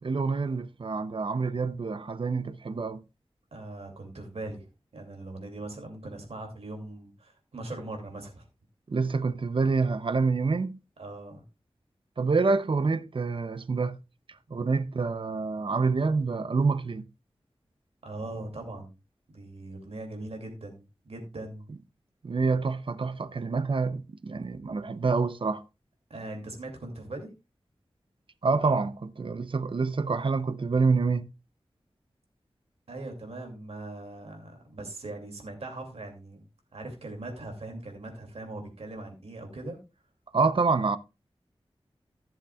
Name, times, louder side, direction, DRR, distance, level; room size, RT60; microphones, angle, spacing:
voice 1, 0.0-3.0 8.9-10.8 12.2-14.0 14.5-17.1 22.2-25.6 28.4-31.3 40.3-41.0, right 4 dB, 55° right, 0.7 m, -27 dB
voice 2, 3.5-8.4 11.0-11.4 18.0-18.9 19.3-21.7 26.1-27.3 32.9-36.4 36.7-39.8, right 2 dB, 85° right, 2.6 m, -40 dB
14.5 x 7.2 x 2.4 m
wide cardioid pair, 85°, 10 cm